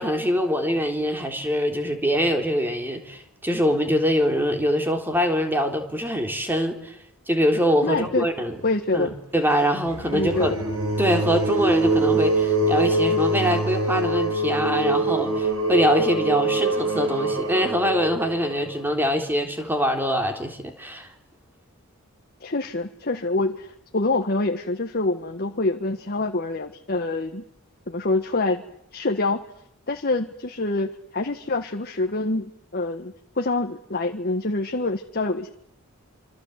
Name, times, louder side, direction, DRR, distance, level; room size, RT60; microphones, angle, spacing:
voice 1, 0.0-7.0 7.3-8.6 8.9-10.5 11.0-21.1, equal, 10° right, 4 dB, 3.8 m, -24 dB
voice 2, 7.8-8.3 8.6-9.1 10.1-10.5 22.4-27.4 27.9-28.6 28.9-29.4 29.9-35.5, left 2 dB, 45° left, 4 dB, 1.5 m, -26 dB
sound 1, 9.9-18.9, right 2 dB, 70° right, 7.5 m, -24 dB
27.0 x 26.0 x 8.2 m, 0.69 s
head